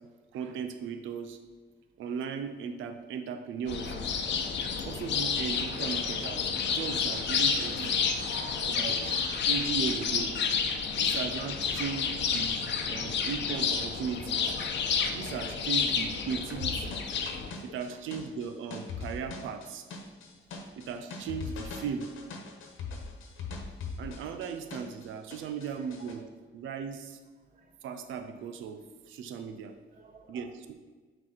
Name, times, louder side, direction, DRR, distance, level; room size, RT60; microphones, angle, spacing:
voice 1, 0.3-1.4 2.0-4.0 4.8-8.0 8.7-9.1 9.5-10.3 11.0-12.6 12.9-14.6 15.1-17.0 17.6-19.9 20.8-22.1 24.0-27.2 27.8-28.8 29.1-29.7 30.3-30.7, right 6 dB, 80° right, 8 dB, 0.6 m, -37 dB
sound 1, 3.7-17.5, left 6 dB, 65° left, 0.8 m, -30 dB
voice 2, 7.5-9.5 29.9-30.5, right 1 dB, 45° right, 3 dB, 1.1 m, -50 dB
sound 2, 16.6-25.0 25.3-26.1, left 4 dB, 80° left, 1.2 m, -40 dB
6.4 x 4.5 x 4.3 m, 1.4 s
cardioid pair, 90°, 20 cm